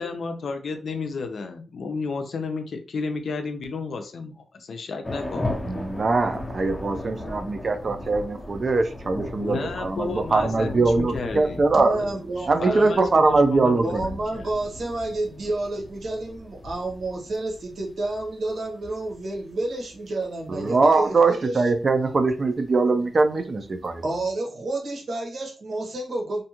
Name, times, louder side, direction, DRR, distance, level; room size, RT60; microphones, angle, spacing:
voice 1, 0.0-5.5 9.4-12.2 12.6-14.5, left 4 dB, 65° left, 0.4 m, -32 dB
sound 1, 5.0-24.2, left 1 dB, 15° left, 0.5 m, -38 dB
voice 2, 5.6-12.0 12.5-14.1 20.5-24.0, right 3 dB, 40° right, 0.4 m, -22 dB
voice 3, 11.7-13.1 13.8-21.6 24.0-26.4, right 2 dB, 60° right, 0.9 m, -30 dB
2.5 x 2.3 x 2.8 m
wide cardioid pair, 120°, 0 cm